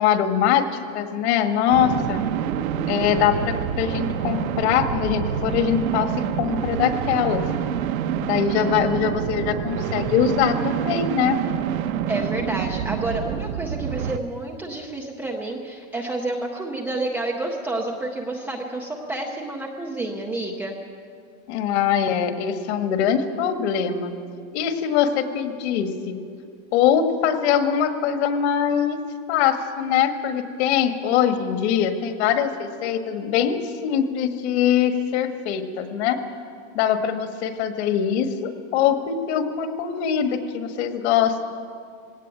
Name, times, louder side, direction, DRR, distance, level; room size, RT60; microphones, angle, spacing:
voice 1, 0.0-2.2 2.9-6.1 6.4-7.4 8.2-11.4 21.5-24.1 24.5-26.2 26.7-29.0 29.3-36.2 36.7-41.5, left 9 dB, 50° left, 7 dB, 1.7 m, -22 dB
sound 1, 1.7-14.2, right 9 dB, 75° right, 1.1 m, -27 dB
voice 2, 12.1-20.7, right 2 dB, 5° right, -2 dB, 0.5 m, -29 dB
19.5 x 17.5 x 9.0 m, 2.3 s
supercardioid pair, 170°, 42 cm